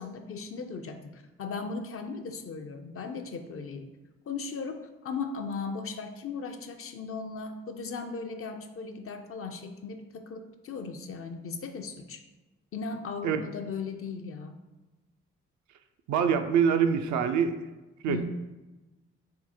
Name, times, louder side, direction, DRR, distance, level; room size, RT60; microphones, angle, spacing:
voice 1, 0.0-3.9 4.3-12.2 12.7-14.5 18.1-18.2, left 4 dB, 45° left, 6 dB, 0.5 m, -37 dB
voice 2, 16.1-17.6 18.0-18.2, right 7 dB, 60° right, 8 dB, 0.4 m, -24 dB
3.7 x 2.1 x 4.2 m, 1.1 s
hypercardioid pair, 45°, 33 cm